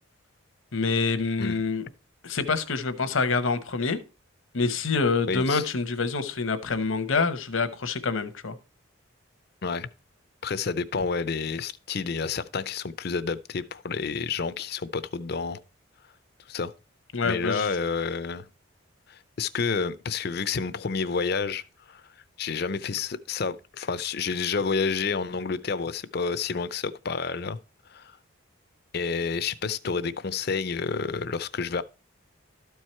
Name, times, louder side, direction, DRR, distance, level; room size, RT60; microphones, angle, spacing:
voice 1, 0.7-1.9 2.2-4.0 4.5-8.6 17.1-17.7, left 4 dB, 75° left, 0.9 m, -26 dB
voice 2, 5.3-5.6 9.6-9.9 10.4-15.6 16.5-16.7 17.2-18.5 19.1-21.6 21.9-22.0 22.4-27.6 27.9-28.2 28.9-31.8, left 5 dB, 50° left, 0.5 m, -29 dB
12.5 x 4.7 x 4.4 m
head